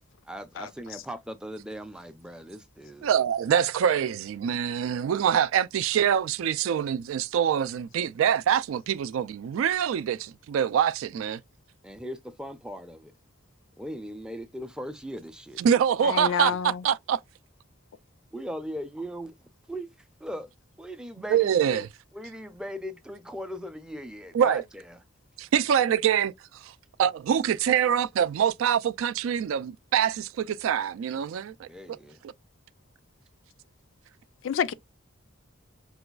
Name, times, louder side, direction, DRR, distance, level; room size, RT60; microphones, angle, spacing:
voice 1, 0.2-3.1 11.8-13.1 13.8-15.6 16.3-16.6 18.3-20.5 20.8-21.9 22.1-25.0 31.7-32.2, equal, 5° right, 0.4 m, -39 dB
voice 2, 3.0-11.4 15.6-17.2 21.3-21.9 24.3-24.6 25.4-26.3 26.6-26.7 27.0-31.7, right 8 dB, 85° right, 0.3 m, -25 dB
voice 3, 16.0-16.8 34.4-34.7, left 7 dB, 75° left, 0.4 m, -28 dB
4.8 x 2.3 x 2.2 m
head